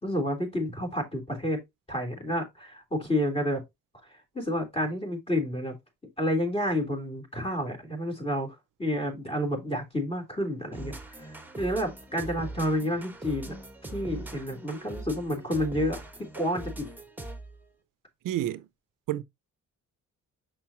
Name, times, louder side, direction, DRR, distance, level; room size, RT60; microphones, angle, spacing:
voice 1, 0.0-1.6 1.9-3.6 4.3-5.7 6.2-13.6 13.9-16.0 16.4-16.9, equal, 20° left, 3.4 m, -30 dB
sound 1, 10.7-17.6, right 2 dB, 5° right, 1.5 m, -41 dB
voice 2, 18.2-18.7 19.1-19.2, right 13 dB, 80° right, 0.6 m, -29 dB
6.7 x 5.9 x 2.9 m
cardioid pair, 100°, 32 cm